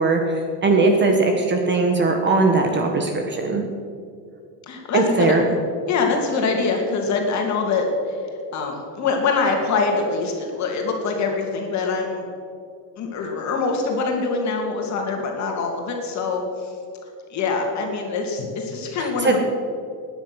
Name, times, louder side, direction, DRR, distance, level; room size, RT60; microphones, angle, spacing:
voice 1, 0.0-3.6 4.9-5.5 19.0-19.4, right 3 dB, 25° right, 3 dB, 1.1 m, -19 dB
voice 2, 4.7-5.3 5.9-8.2 8.5-12.2 13.0-16.4 17.3-19.4, left 4 dB, 35° left, 2 dB, 2.6 m, -24 dB
19.0 x 9.8 x 6.2 m, 2.4 s
cardioid pair, 170°, 46 cm